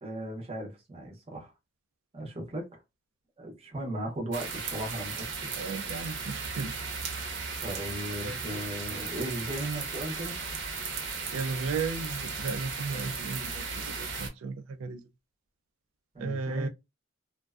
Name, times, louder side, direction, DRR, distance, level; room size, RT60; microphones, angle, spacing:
voice 1, 0.0-1.5 2.1-2.8 3.4-5.5 7.6-10.4 16.1-16.7, right 1 dB, 30° right, 0.7 m, -37 dB
sound 1, 4.3-14.3, right 4 dB, 65° right, 0.7 m, -36 dB
voice 2, 5.6-6.8 8.2-8.6 11.3-15.0 16.2-16.7, right 4 dB, 85° right, 0.3 m, -35 dB
2.5 x 2.2 x 2.3 m
head